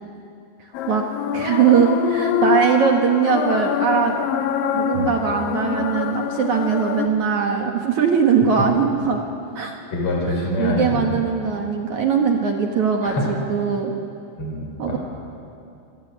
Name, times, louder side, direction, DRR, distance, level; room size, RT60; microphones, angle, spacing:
sound 1, 0.7-7.1, left 9 dB, 75° left, 3.3 m, -25 dB
voice 1, 1.3-4.2 4.7-9.2 9.6-9.8 10.6-13.9 14.8-15.0, right 6 dB, 60° right, 2 dB, 2.0 m, -20 dB
voice 2, 9.9-11.2 13.0-13.2 14.4-15.0, left 2 dB, 30° left, -1 dB, 5.0 m, -25 dB
27.5 x 25.0 x 8.1 m, 2.6 s
omnidirectional pair, 5.6 m